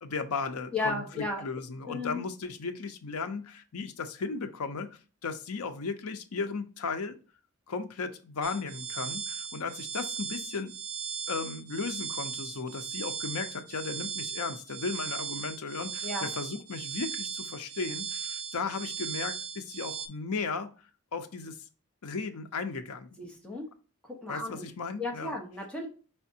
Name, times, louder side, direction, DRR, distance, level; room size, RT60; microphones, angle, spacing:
voice 1, 0.0-4.9 5.2-7.2 7.7-10.7 11.3-20.7 21.1-21.6 22.0-23.2 24.3-25.3, left 4 dB, 85° left, 7 dB, 0.6 m, -35 dB
voice 2, 0.7-1.4 1.8-2.2 16.0-16.3 23.2-23.7 24.2-24.7 25.0-25.9, left 2 dB, 5° left, -2 dB, 1.2 m, -34 dB
sound 1, 8.4-20.1, right 6 dB, 85° right, 0.7 m, -37 dB
5.0 x 3.4 x 2.7 m, 0.36 s
head